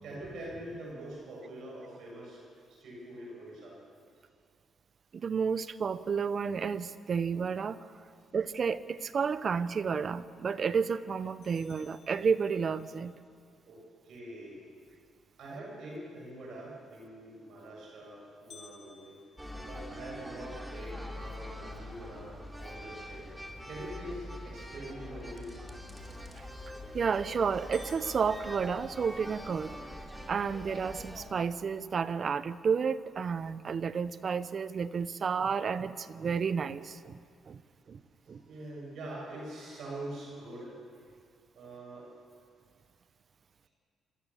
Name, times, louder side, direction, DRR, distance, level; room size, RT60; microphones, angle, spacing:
voice 1, 0.0-2.4 2.8-3.8 13.7-14.6 15.4-19.2 19.7-23.3 23.7-25.6 38.5-40.7 41.6-42.1, right 1 dB, 70° right, -4 dB, 7.3 m, -44 dB
voice 2, 5.1-7.8 8.3-13.1 26.9-29.8 30.3-37.2 37.5-37.6 37.9-38.0 38.3-38.4, right 6 dB, 45° right, 15 dB, 0.8 m, -31 dB
sound 1, 11.4-13.0 18.5-20.7 21.2-21.3 21.8-21.9 22.5-22.8 26.5-26.9 27.3-27.4 27.7-29.5, left 6 dB, 60° left, 3.3 m, -57 dB
sound 2, 19.4-31.3, left 1 dB, 5° right, 2.9 m, -44 dB
28.0 x 14.0 x 7.2 m, 2.2 s
cardioid pair, 90°, 0 cm